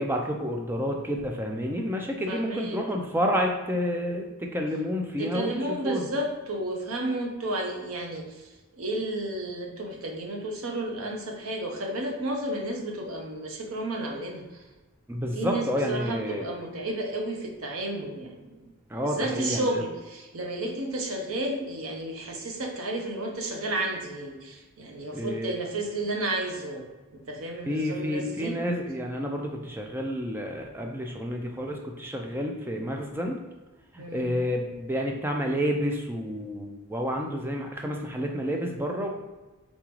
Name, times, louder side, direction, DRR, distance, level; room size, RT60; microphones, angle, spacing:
voice 1, 0.0-6.0 15.1-16.4 18.9-19.7 25.1-25.5 27.7-33.4 33.9-39.1, equal, 10° right, 1 dB, 0.4 m, -29 dB
voice 2, 2.3-2.8 5.2-14.7 15.3-18.7 19.0-28.6 34.0-34.4, right 1 dB, 75° right, 2 dB, 0.8 m, -32 dB
3.9 x 3.7 x 3.0 m, 1.2 s
head